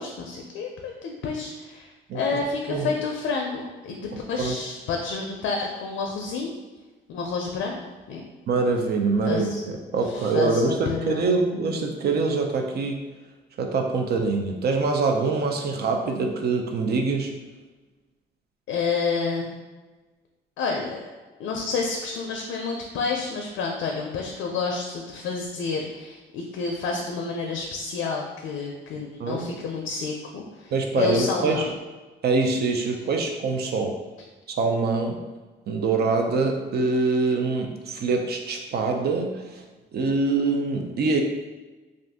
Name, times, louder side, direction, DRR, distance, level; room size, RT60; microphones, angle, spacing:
voice 1, 0.0-1.9 2.1-6.5 7.1-7.8 8.1-8.2 9.2-9.6 10.1-11.3 18.7-19.6 20.6-21.0 21.4-31.7, left 4 dB, 75° left, 1 dB, 0.5 m, -29 dB
voice 2, 8.5-13.0 13.6-17.3 29.2-29.5 30.7-31.7 32.2-33.9 34.6-35.2 35.7-39.6 39.9-41.2, right 3 dB, 55° right, 3 dB, 0.5 m, -24 dB
2.5 x 2.5 x 3.5 m, 1.3 s
cardioid pair, 90°, 20 cm